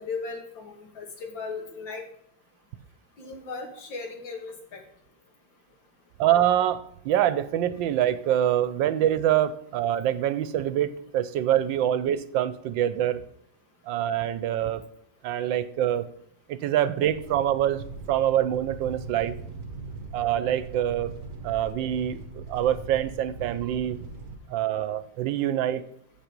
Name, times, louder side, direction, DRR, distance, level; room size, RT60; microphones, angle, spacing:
voice 1, 0.0-2.0 3.2-4.8, left 4 dB, 90° left, 3 dB, 2.6 m, -37 dB
voice 2, 6.2-13.2 13.9-14.8 15.2-16.1 16.5-19.3 20.1-21.2 21.4-24.0 24.5-25.8, right 11 dB, 85° right, 14 dB, 1.4 m, -25 dB
sound 1, 17.0-24.4, right 4 dB, 55° right, 1.5 m, -40 dB
7.5 x 7.4 x 5.2 m, 0.71 s
omnidirectional pair, 2.0 m